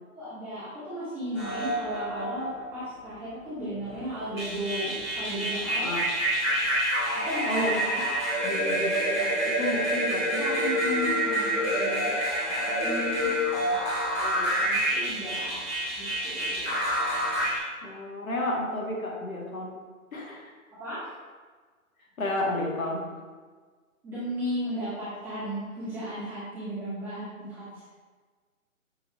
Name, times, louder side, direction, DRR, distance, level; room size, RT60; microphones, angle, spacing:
voice 1, 0.1-5.9 7.2-7.5 8.5-8.6 10.4-12.1 12.6-13.3 14.1-16.7 20.8-21.2 24.0-27.9, equal, 5° right, -15 dB, 1.0 m, -35 dB
sound 1, 1.4-3.0 3.8-17.6, equal, 10° left, 1.2 m, -28 dB
voice 2, 7.5-7.8 8.4-10.4 12.5-13.8 17.8-19.7 20.1-20.5 22.2-23.1, left 1 dB, 75° left, -2 dB, 1.1 m, -32 dB
6.0 x 3.0 x 2.2 m, 1.4 s
figure-of-eight pair, 145°, 42 cm